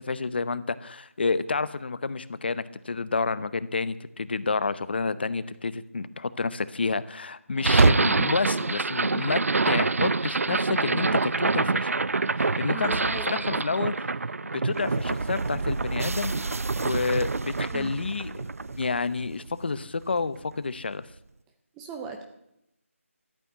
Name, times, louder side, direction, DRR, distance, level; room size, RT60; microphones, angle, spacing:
voice 1, 0.0-9.4 9.7-11.9 12.4-12.9 13.3-13.9 14.5-16.5 16.8-18.5 18.7-21.0, left 4 dB, 45° left, 16 dB, 0.8 m, -29 dB
sound 1, 7.6-19.8, right 3 dB, 75° right, 0.5 m, -26 dB
voice 2, 12.7-13.6 17.7-17.9 21.7-22.2, right 4 dB, 5° right, 4 dB, 0.5 m, -38 dB
13.5 x 8.7 x 9.2 m, 0.80 s
figure-of-eight pair, 170°, 8 cm